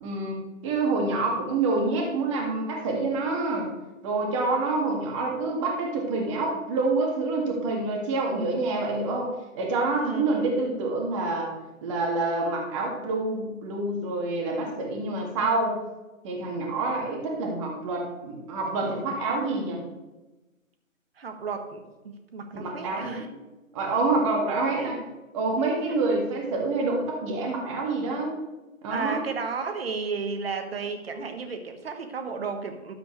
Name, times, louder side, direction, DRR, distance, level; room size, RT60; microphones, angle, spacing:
voice 1, 0.0-0.4 0.6-3.7 4.0-11.5 11.8-15.8 16.2-19.8 22.5-23.2 23.7-25.0 25.3-28.4 28.8-29.2, right 3 dB, 25° right, 0 dB, 1.9 m, -27 dB
voice 2, 10.0-10.4 21.2-23.5 24.3-24.9 25.9-26.0 28.9-32.9, right 5 dB, 45° right, 6 dB, 1.4 m, -34 dB
12.5 x 7.6 x 3.2 m, 1.1 s
figure-of-eight pair, 140°, 41 cm